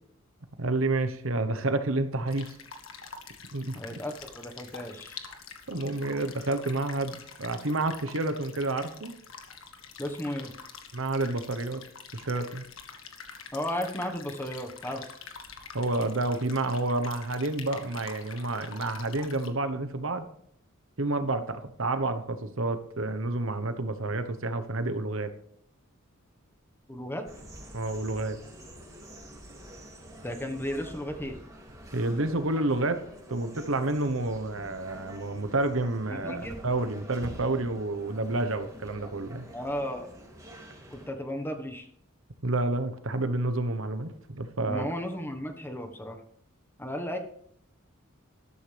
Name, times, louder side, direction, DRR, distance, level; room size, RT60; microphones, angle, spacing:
voice 1, 0.6-2.4 3.5-4.0 5.7-9.2 10.9-11.8 12.1-12.6 15.7-20.3 21.0-25.3 27.7-28.4 31.9-33.0 33.3-39.4 42.4-44.9, right 2 dB, 65° right, 9 dB, 1.1 m, -29 dB
sound 1, 2.3-19.5, left 6 dB, 65° left, 1.7 m, -46 dB
voice 2, 3.7-5.2 10.0-10.5 13.5-15.0 26.9-27.3 30.2-31.4 36.1-36.6 39.5-40.1 40.9-41.9 44.7-46.2 46.8-47.2, equal, 10° left, 5 dB, 1.3 m, -34 dB
sound 2, 27.3-41.1, equal, 15° right, 2.8 m, -47 dB
13.0 x 12.5 x 3.4 m, 0.67 s
head